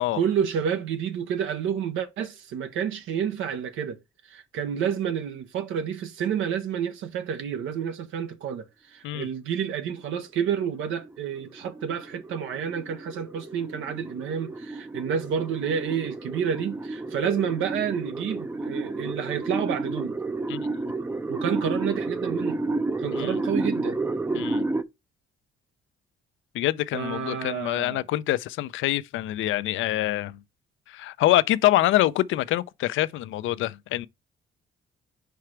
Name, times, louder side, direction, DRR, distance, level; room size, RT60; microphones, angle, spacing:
voice 1, 0.1-4.0 4.3-20.1 21.3-22.6 23.0-24.0 26.9-28.0, right 8 dB, 85° right, 0.8 m, -29 dB
sound 1, 10.5-24.8, right 2 dB, 10° right, 0.5 m, -31 dB
voice 2, 24.3-24.6 26.5-30.4 30.9-34.1, left 15 dB, 80° left, 0.5 m, -25 dB
4.8 x 4.6 x 4.4 m
cardioid pair, 90°, 20 cm